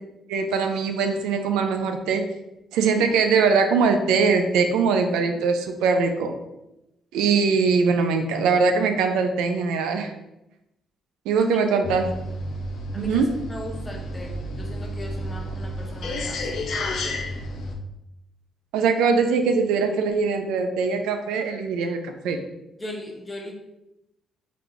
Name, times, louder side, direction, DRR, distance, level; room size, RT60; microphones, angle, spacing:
voice 1, 0.3-2.2 2.7-6.4 7.1-10.1 11.3-12.1 12.9-13.3 18.7-22.4, right 5 dB, 85° right, 6 dB, 0.3 m, -22 dB
sound 1, 11.8-17.8, left 1 dB, 65° left, 0.4 m, -31 dB
voice 2, 12.9-16.7 22.8-23.5, left 1 dB, 25° left, 1 dB, 0.8 m, -37 dB
3.6 x 2.4 x 3.0 m, 0.90 s
supercardioid pair, 55°, 0 cm